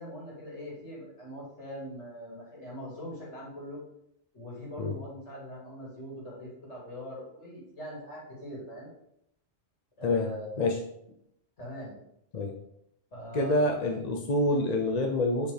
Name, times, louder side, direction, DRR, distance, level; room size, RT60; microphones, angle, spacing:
voice 1, 0.0-3.8 4.3-8.9 10.0-10.7 11.6-12.0 13.1-13.7 14.3-14.5, equal, 80° left, -5 dB, 2.7 m, -42 dB
voice 2, 13.3-15.5, left 2 dB, 45° left, 3 dB, 0.6 m, -27 dB
6.3 x 5.2 x 3.4 m, 0.75 s
omnidirectional pair, 1.2 m